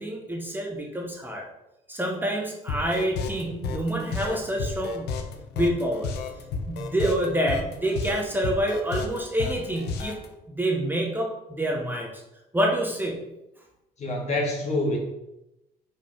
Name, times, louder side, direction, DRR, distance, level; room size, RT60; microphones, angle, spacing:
voice 1, 0.0-1.4 1.9-5.1 5.5-6.1 6.7-10.1 10.5-12.2 12.5-13.2, right 1 dB, 10° right, -1 dB, 1.2 m, -27 dB
sound 1, 2.7-10.3, left 5 dB, 80° left, 1.0 m, -32 dB
voice 2, 14.0-15.0, left 2 dB, 40° left, -1 dB, 1.5 m, -26 dB
5.7 x 5.0 x 5.1 m, 0.92 s
cardioid pair, 110°, 17 cm